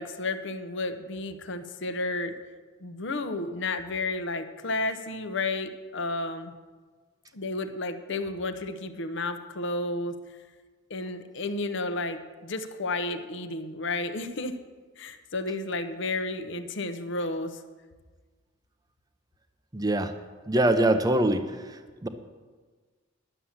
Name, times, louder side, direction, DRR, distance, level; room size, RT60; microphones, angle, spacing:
voice 1, 0.0-2.3 2.8-6.5 7.3-10.1 10.9-14.6 15.0-17.6, left 2 dB, 60° left, 9 dB, 0.8 m, -32 dB
voice 2, 19.7-20.1 20.5-22.1, right 1 dB, 20° right, 8 dB, 0.6 m, -24 dB
11.0 x 7.4 x 7.1 m, 1.4 s
head